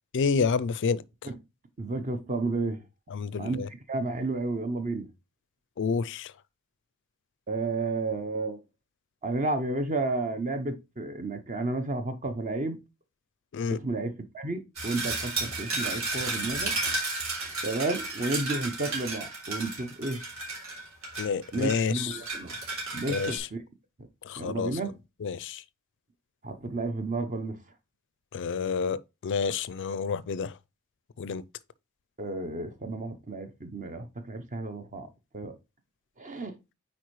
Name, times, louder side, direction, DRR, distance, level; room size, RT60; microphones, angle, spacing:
voice 1, 0.1-1.0 3.1-3.7 5.8-6.3 13.5-13.8 21.2-22.1 23.1-23.5 24.2-24.8 25.2-25.6 28.3-30.5 31.2-31.4, left 5 dB, 55° left, 0.4 m, -29 dB
voice 2, 1.8-2.8 3.4-5.1 7.5-8.6 9.2-12.8 13.7-16.7 17.6-20.2 21.5-22.6 22.9-23.6 24.4-24.9 26.4-27.6 32.2-35.1 35.3-35.6 36.2-36.6, right 2 dB, 35° right, 0.7 m, -32 dB
sound 1, 14.8-23.4, right 3 dB, 65° right, 3.2 m, -33 dB
9.2 x 4.3 x 3.1 m
head